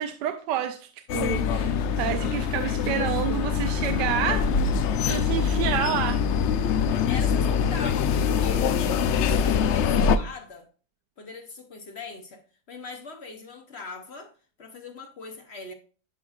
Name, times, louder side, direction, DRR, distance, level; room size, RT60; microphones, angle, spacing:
voice 1, 0.0-4.5 5.1-6.2, right 10 dB, 85° right, 1.2 m, -29 dB
sound 1, 1.1-10.2, left 6 dB, 85° left, 0.6 m, -24 dB
voice 2, 7.1-10.7 11.2-12.4 12.7-14.3 14.6-15.7, left 3 dB, 50° left, 0.9 m, -41 dB
10.5 x 4.9 x 2.4 m
omnidirectional pair, 1.8 m